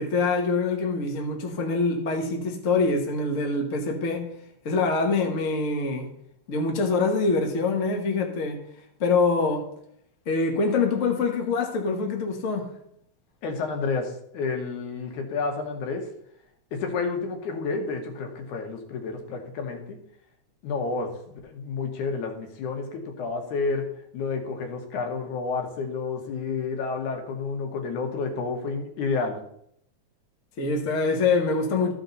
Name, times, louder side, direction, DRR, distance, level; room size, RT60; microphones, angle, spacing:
voice 1, 0.0-4.3 4.6-6.1 6.5-8.7 9.0-9.7 10.3-12.7 30.6-31.9, left 4 dB, 50° left, 0.9 m, -25 dB
voice 2, 13.4-16.1 16.7-20.0 20.6-23.9 24.1-29.4, left 4 dB, 90° left, 2.7 m, -30 dB
13.5 x 5.2 x 4.0 m
omnidirectional pair, 3.4 m